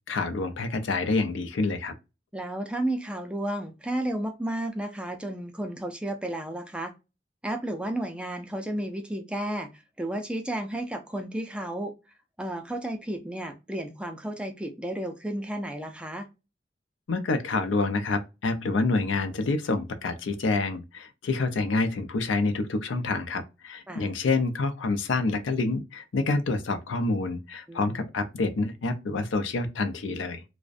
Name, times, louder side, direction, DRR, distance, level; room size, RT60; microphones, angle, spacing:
voice 1, 0.1-1.9 17.1-30.4, left 3 dB, 90° left, 0.5 m, -27 dB
voice 2, 2.3-6.9 7.4-11.9 12.4-16.3 23.9-24.1 27.7-28.0, right 1 dB, 5° right, 0.4 m, -32 dB
2.4 x 2.1 x 2.4 m
head